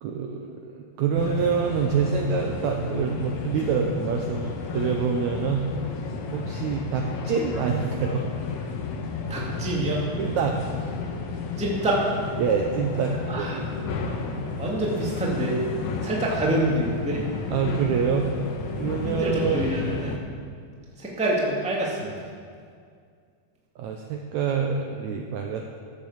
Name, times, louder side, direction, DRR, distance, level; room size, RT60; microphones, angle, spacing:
voice 1, 0.0-5.7 6.3-8.2 10.2-10.6 12.4-13.6 17.5-18.3 18.8-19.7 23.8-25.6, right 6 dB, 80° right, 2 dB, 1.7 m, -26 dB
sound 1, 1.2-20.2, left 4 dB, 65° left, 2.0 m, -32 dB
voice 2, 9.3-10.1 11.6-12.0 13.3-13.6 14.6-15.5 16.0-17.2 19.1-20.2 21.0-22.3, right 1 dB, 5° right, -4 dB, 1.2 m, -26 dB
13.5 x 7.5 x 7.2 m, 2.2 s
omnidirectional pair, 4.2 m